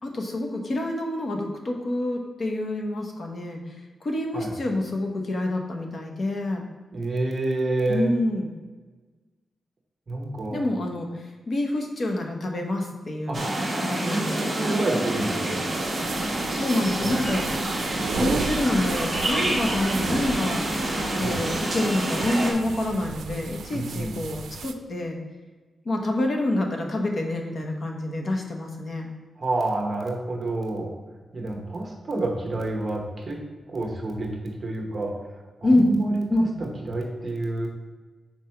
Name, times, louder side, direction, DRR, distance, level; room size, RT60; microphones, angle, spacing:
voice 1, 0.0-3.6 4.0-6.6 7.9-8.5 10.5-11.1 11.5-13.4 13.8-14.6 16.5-17.6 18.1-20.6 21.2-25.2 25.8-29.1 35.6-35.9 36.3-36.5, left 1 dB, 45° left, 2 dB, 1.0 m, -27 dB
voice 2, 6.9-8.1 10.1-10.6 13.3-13.4 14.0-15.7 23.7-24.2 29.4-30.9 31.3-33.4 33.7-35.1 35.6-37.7, right 2 dB, 35° right, 0 dB, 1.0 m, -28 dB
sound 1, 13.3-22.5, right 1 dB, 15° right, 1.2 m, -27 dB
sound 2, 15.7-24.7, right 5 dB, 85° right, 0.4 m, -35 dB
5.8 x 4.5 x 4.3 m, 1.3 s
wide cardioid pair, 145°, 0 cm